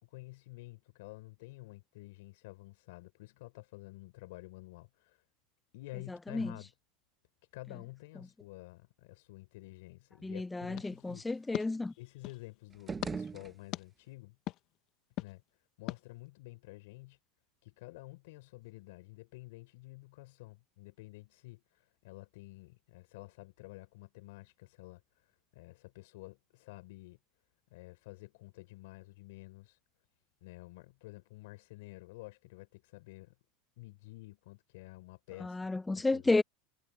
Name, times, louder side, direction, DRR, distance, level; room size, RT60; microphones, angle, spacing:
voice 1, 0.0-5.2 5.7-6.7 7.5-11.3 12.0-14.4 15.2-15.4 15.8-17.2 17.6-27.2 27.7-29.8 30.4-33.3 33.8-35.6 36.0-36.2, left 21 dB, 75° left, 4.5 m, -50 dB
voice 2, 6.1-6.6 10.2-11.9 35.4-36.4, left 3 dB, 10° left, 0.4 m, -32 dB
dhunhero slam mic footsteps, 10.7-12.5 13.0-13.1 13.7-13.8 14.5-14.6 15.2-15.3 15.9-16.0, left 16 dB, 55° left, 1.3 m, -41 dB
sound 1, 12.7-14.1, right 5 dB, 20° right, 1.4 m, -42 dB
supercardioid pair, 110°, 0 cm